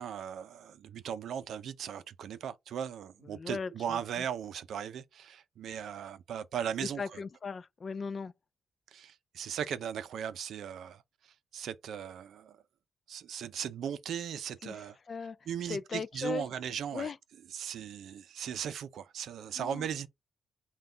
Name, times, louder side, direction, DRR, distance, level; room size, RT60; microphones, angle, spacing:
voice 1, 0.0-7.2 8.9-11.0 11.5-12.6 13.1-15.0 15.5-17.1 17.5-20.1, right 8 dB, 70° right, 0.5 m, -38 dB
voice 2, 3.3-4.2 6.8-8.3 14.6-14.8 15.1-15.4 15.7-16.5 16.9-17.2 19.5-19.9, left 5 dB, 35° left, 0.3 m, -38 dB
5.6 x 2.3 x 3.8 m
cardioid pair, 130°, 0 cm